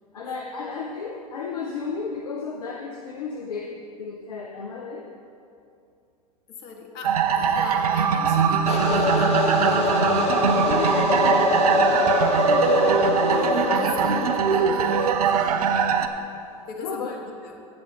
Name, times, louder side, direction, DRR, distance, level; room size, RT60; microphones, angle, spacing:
voice 1, 0.1-5.1 10.5-13.0 16.8-17.1, left 5 dB, 75° left, 2 dB, 0.7 m, -34 dB
voice 2, 6.5-10.1 13.2-15.8 16.7-17.6, left 4 dB, 50° left, 2 dB, 1.6 m, -38 dB
sound 1, 7.0-16.1, right 6 dB, 75° right, 0.6 m, -22 dB
sound 2, 8.7-15.3, left 4 dB, 30° left, 1.2 m, -24 dB
16.5 x 7.1 x 3.6 m, 2.5 s
figure-of-eight pair, 85°, 19 cm